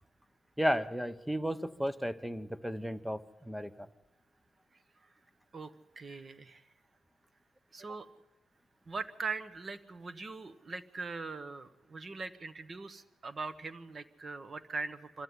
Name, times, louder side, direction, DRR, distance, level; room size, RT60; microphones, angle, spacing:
voice 1, 0.6-3.7, equal, ahead, 14 dB, 0.8 m, -33 dB
voice 2, 5.5-6.6 7.7-8.1 8.9-15.2, right 4 dB, 25° right, 12 dB, 1.1 m, -41 dB
25.0 x 14.5 x 9.6 m, 1.0 s
cardioid pair, 165°, 0 cm